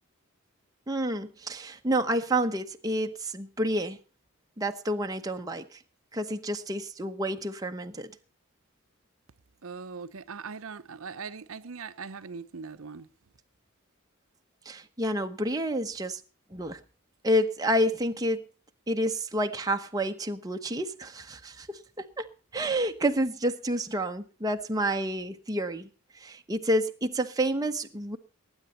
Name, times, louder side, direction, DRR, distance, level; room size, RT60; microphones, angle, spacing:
voice 1, 0.9-4.0 4.6-5.8 6.1-8.1 14.7-16.2 16.5-16.8 17.2-18.5 18.9-22.3 22.5-25.9 26.1-28.2, right 1 dB, 15° right, 0.9 m, -29 dB
voice 2, 9.6-13.1, right 5 dB, 65° right, 0.7 m, -40 dB
19.0 x 8.9 x 4.2 m
head